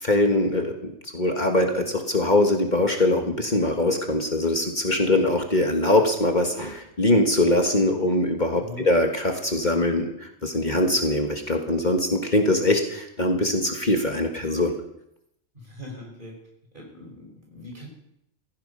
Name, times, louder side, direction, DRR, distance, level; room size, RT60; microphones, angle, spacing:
voice 1, 0.0-14.7, left 1 dB, 40° left, 3 dB, 1.8 m, -22 dB
voice 2, 15.5-16.4 16.7-17.9, left 1 dB, 45° right, -1 dB, 5.6 m, -41 dB
16.5 x 15.5 x 5.6 m, 0.78 s
omnidirectional pair, 1.2 m